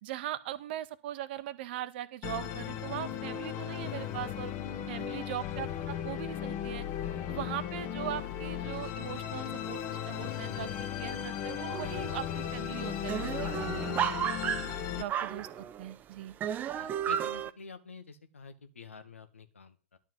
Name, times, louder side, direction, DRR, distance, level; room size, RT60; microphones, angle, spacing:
voice 1, 0.0-4.5 4.9-6.8 7.3-10.7 11.0-14.0 15.0-16.3, right 12 dB, 55° right, 13 dB, 1.0 m, -40 dB
Musical instrument, 2.2-15.0, left 10 dB, 40° left, 1.3 m, -36 dB
sound 1, 11.7-12.1 12.4-12.5 12.8-15.9 16.4-17.5, right 9 dB, 25° right, 0.6 m, -33 dB
voice 2, 14.5-14.8 16.8-20.0, left 5 dB, 85° left, 9 dB, 1.5 m, -49 dB
11.0 x 4.6 x 7.7 m, 0.35 s
figure-of-eight pair, 105°, 7 cm